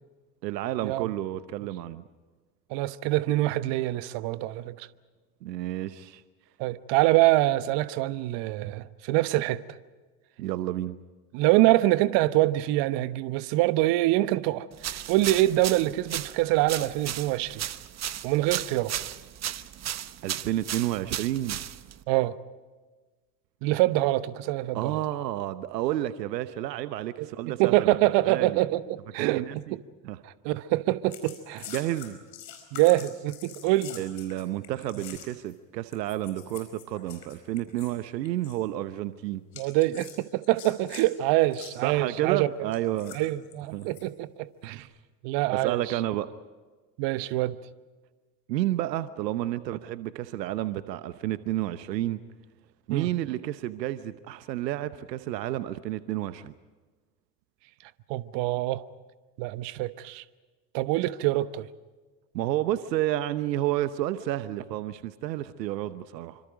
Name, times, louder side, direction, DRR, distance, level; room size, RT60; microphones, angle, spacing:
voice 1, 0.4-2.0 5.4-6.2 10.4-11.0 20.2-21.6 24.7-27.9 28.2-28.6 29.2-29.8 30.0-30.2 31.7-32.2 34.0-39.4 41.8-43.2 43.7-43.9 44.6-44.9 45.5-46.3 48.5-52.2 52.9-56.5 62.3-66.4, right 14 dB, 80° right, 1.0 m, -30 dB
voice 2, 2.7-4.9 6.6-9.6 11.3-17.7 18.2-18.9 22.1-22.4 23.6-25.0 27.2-27.3 27.6-29.4 30.2-31.7 32.7-34.0 39.6-42.5 43.1-44.9 45.2-46.0 47.0-47.6 52.9-53.1 58.1-58.9 59.4-60.2 60.7-61.7, right 17 dB, 60° right, 1.2 m, -25 dB
sound 1, 14.8-22.0, right 11 dB, 30° right, 1.0 m, -35 dB
sound 2, 31.1-35.5 35.9-38.0 38.2-38.6 39.5-41.1 41.5-41.8 42.7-44.0 44.6-44.8, left 10 dB, 75° left, 4.9 m, -46 dB
27.5 x 25.5 x 5.1 m
hypercardioid pair, 75°, 50 cm